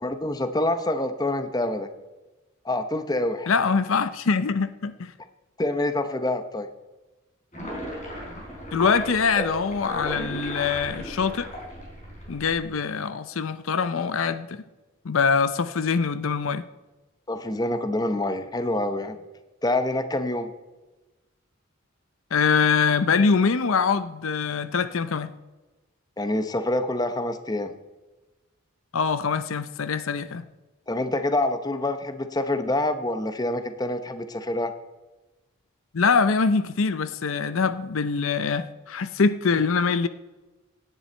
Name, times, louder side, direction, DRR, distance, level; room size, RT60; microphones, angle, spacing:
voice 1, 0.0-1.9 2.6-3.5 5.6-6.7 17.3-19.2 19.6-20.5 26.2-27.7 30.9-34.7, left 1 dB, 20° left, 0.8 m, -26 dB
voice 2, 3.5-5.1 8.7-11.5 12.3-14.6 15.0-16.6 22.3-25.3 28.9-30.4 35.9-40.1, left 5 dB, 75° left, 0.6 m, -23 dB
sound 1, 7.5-12.7, equal, 35° left, 4.1 m, -35 dB
17.5 x 10.0 x 4.4 m
head